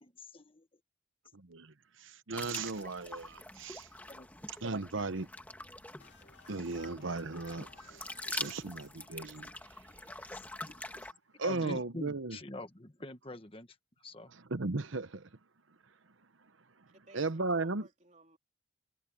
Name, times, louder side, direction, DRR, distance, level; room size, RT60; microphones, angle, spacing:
voice 1, 0.0-0.7 4.1-4.3 8.6-8.7 9.4-9.5 10.0-10.8 11.4-13.7 14.0-14.3, left 1 dB, 25° left, 1.5 m, -46 dB
voice 2, 1.3-1.7 2.0-3.9 4.6-5.3 6.5-9.5 11.4-12.4 14.5-15.3 17.1-17.9, right 3 dB, 75° right, 1.0 m, -36 dB
sound 1, 2.3-11.1, left 2 dB, 10° left, 1.5 m, -45 dB
sound 2, 6.0-9.8, left 4 dB, 65° left, 2.1 m, -60 dB
voice 3, 16.9-18.4, right 2 dB, 35° right, 3.3 m, -60 dB
head